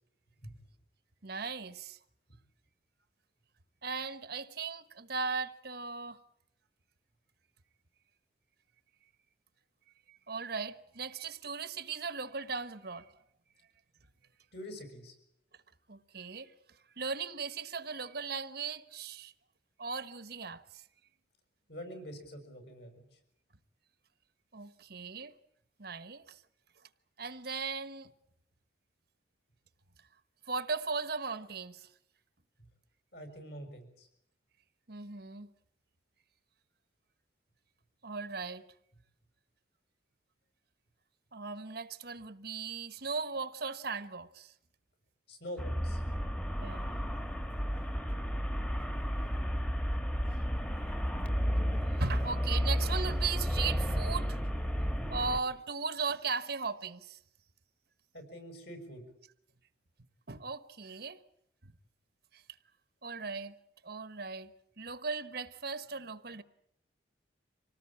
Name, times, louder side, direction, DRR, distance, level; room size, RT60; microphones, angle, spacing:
voice 1, 1.2-2.0 3.8-6.2 10.1-13.1 15.9-16.5 17.0-19.3 19.8-20.8 24.5-25.3 25.8-26.4 27.2-28.1 30.5-31.9 34.9-35.5 38.0-38.6 41.3-44.5 46.6-46.9 50.2-51.0 52.0-54.4 54.8-57.2 60.3-61.2 61.6-61.7 62.3-62.4 63.0-63.6 63.8-64.5 64.8-66.4, right 4 dB, 55° right, 1.2 m, -38 dB
voice 2, 14.5-15.1 21.7-23.1 33.1-34.1 45.3-46.0 58.1-59.0, equal, 60° left, 6.5 m, -45 dB
Traffic noise roadway noise, 45.6-55.4, equal, 5° left, 1.4 m, -32 dB
26.0 x 18.5 x 8.8 m
head